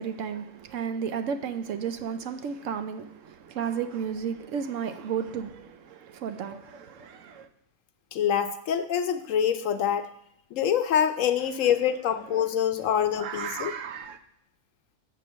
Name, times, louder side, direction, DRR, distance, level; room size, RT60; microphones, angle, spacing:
voice 1, 0.0-7.5 12.5-12.6 13.2-14.2, right 7 dB, 70° right, 0.9 m, -33 dB
voice 2, 8.1-10.1 10.5-13.7, left 9 dB, 70° left, 0.9 m, -25 dB
7.2 x 4.5 x 6.2 m
omnidirectional pair, 1.5 m